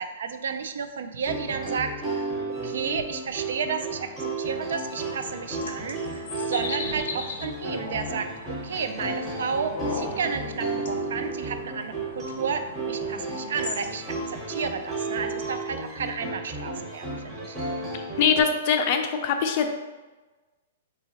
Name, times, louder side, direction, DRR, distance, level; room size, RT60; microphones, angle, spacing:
voice 1, 0.0-2.3 2.6-4.1 4.4-8.3 8.6-12.6 12.9-17.6, right 6 dB, 70° right, 8 dB, 0.4 m, -32 dB
sound 1, 1.2-18.4, right 3 dB, 15° right, 0.8 m, -33 dB
sound 2, 4.8-14.4, left 4 dB, 80° left, 0.6 m, -39 dB
voice 2, 18.2-19.7, left 6 dB, 35° left, 6 dB, 0.4 m, -22 dB
4.6 x 2.7 x 2.8 m, 1.2 s
hypercardioid pair, 170°, 0 cm